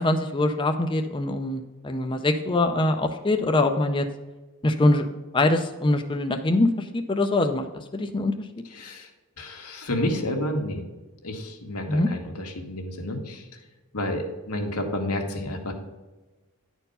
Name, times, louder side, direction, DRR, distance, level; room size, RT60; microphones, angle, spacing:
voice 1, 0.0-4.1 4.6-5.1 5.3-8.3 11.9-12.1, left 2 dB, 20° left, 6 dB, 0.5 m, -23 dB
voice 2, 8.7-9.1 9.4-10.8 11.2-13.5 13.9-15.7, left 1 dB, 90° left, 2 dB, 1.6 m, -30 dB
10.0 x 4.5 x 5.5 m, 1.2 s
head